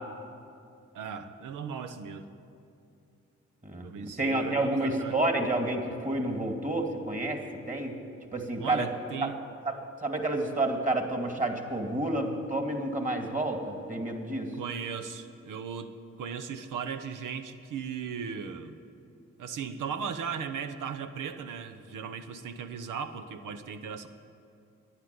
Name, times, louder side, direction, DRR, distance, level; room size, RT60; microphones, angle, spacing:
voice 1, 0.9-2.3 3.8-5.2 8.6-9.4 14.6-18.8 19.4-24.1, right 6 dB, 80° right, 10 dB, 0.9 m, -37 dB
voice 2, 4.2-7.4 7.7-7.9 8.3-8.9 9.7-9.8 10.0-14.5, right 2 dB, 25° right, 4 dB, 2.4 m, -29 dB
11.5 x 9.8 x 9.6 m, 2.5 s
supercardioid pair, 50°, 31 cm